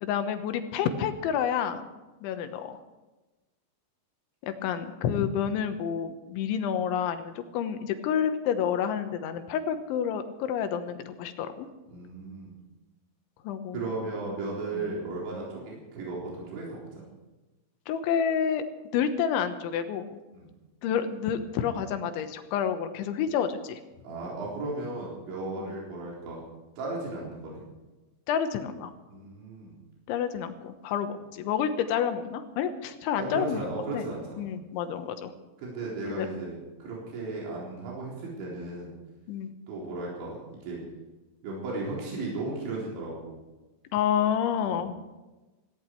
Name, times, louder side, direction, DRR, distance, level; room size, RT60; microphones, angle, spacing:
voice 1, 0.0-1.9 2.2-2.8 4.4-11.7 13.5-13.8 17.9-18.6 18.9-20.2 20.8-23.8 25.6-25.7 28.3-28.9 30.1-33.7 33.9-34.1 34.4-35.3 36.1-36.3 39.3-39.5 43.9-44.9, left 8 dB, 90° left, 8 dB, 3.5 m, -29 dB
voice 2, 11.9-12.6 13.7-17.0 20.3-20.5 24.0-26.4 26.8-27.6 29.1-29.8 33.2-34.5 35.6-38.9 39.7-40.4 40.6-40.8 41.4-43.4 44.7-44.8, right 3 dB, 80° right, -5 dB, 6.3 m, -35 dB
17.5 x 16.0 x 4.6 m, 1.1 s
omnidirectional pair, 5.2 m